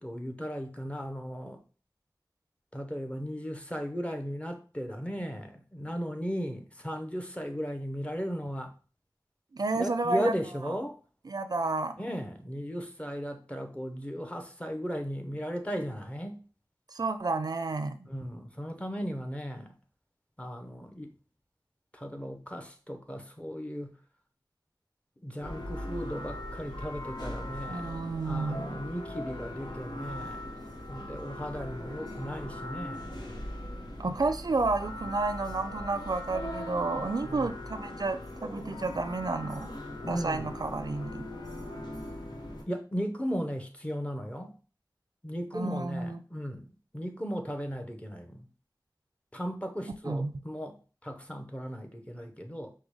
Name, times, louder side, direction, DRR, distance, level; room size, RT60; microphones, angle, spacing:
voice 1, 0.0-1.6 2.7-8.7 9.7-11.0 12.0-16.4 18.0-19.8 20.4-21.1 21.9-24.0 25.2-27.9 28.2-30.4 30.9-33.1 37.2-37.5 40.1-40.5 42.7-44.5 45.2-48.5 49.3-52.7, equal, 15° left, 5 dB, 0.8 m, -36 dB
voice 2, 9.5-10.3 11.3-12.0 16.9-18.0 27.7-28.8 34.0-39.7 40.1-41.3 45.5-46.2 50.1-50.3, right 3 dB, 65° right, 10 dB, 0.4 m, -31 dB
sound 1, 25.4-42.6, left 1 dB, 80° left, 1.1 m, -40 dB
5.1 x 2.2 x 4.7 m, 0.37 s
wide cardioid pair, 50°, 7 cm